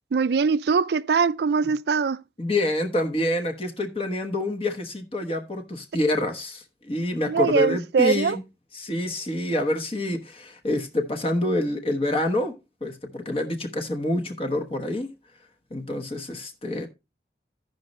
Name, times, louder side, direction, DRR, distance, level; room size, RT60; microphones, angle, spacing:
voice 1, 0.1-2.2 7.3-8.4, right 5 dB, 65° right, 0.4 m, -22 dB
voice 2, 2.4-8.4 8.7-12.5 12.8-15.1 15.7-16.9, left 1 dB, 30° left, 1.1 m, -27 dB
15.5 x 5.3 x 3.0 m
head